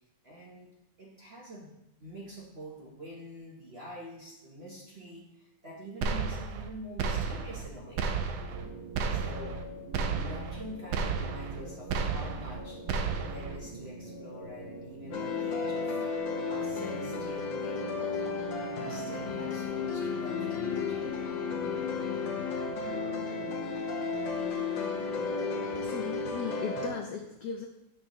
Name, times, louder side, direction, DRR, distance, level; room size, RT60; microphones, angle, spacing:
voice 1, 0.2-1.7 2.0-8.1 9.1-9.6 10.1-12.8 13.3-16.0 16.5-18.2 18.7-21.2, equal, 40° right, -3 dB, 0.9 m, -46 dB
sound 1, 6.0-6.7 7.0-7.7 8.0-8.7 8.9-9.6 9.9-10.6 10.9-11.6 11.9-12.6 12.9-13.6, right 5 dB, 75° right, 0.9 m, -32 dB
sound 2, 8.4-26.1, right 1 dB, 60° right, 1.6 m, -44 dB
sound 3, 15.1-26.9, left 5 dB, 65° left, 1.5 m, -33 dB
voice 2, 25.6-27.7, left 6 dB, 80° left, 4 dB, 0.9 m, -37 dB
7.7 x 6.4 x 3.0 m, 0.89 s
omnidirectional pair, 2.4 m